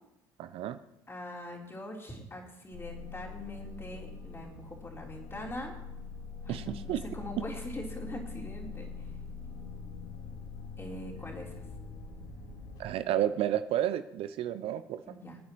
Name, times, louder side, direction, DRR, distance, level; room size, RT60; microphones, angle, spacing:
voice 1, 0.4-0.8 6.5-7.0 12.8-15.0, right 11 dB, 55° right, 12 dB, 0.6 m, -31 dB
voice 2, 1.1-5.8 6.4-9.1 10.8-11.6 15.1-15.4, left 1 dB, 20° left, -2 dB, 3.9 m, -42 dB
sound 1, 2.7-13.1, left 4 dB, 75° left, 5.9 m, -43 dB
25.0 x 9.4 x 3.2 m, 0.86 s
hypercardioid pair, 65°, 12 cm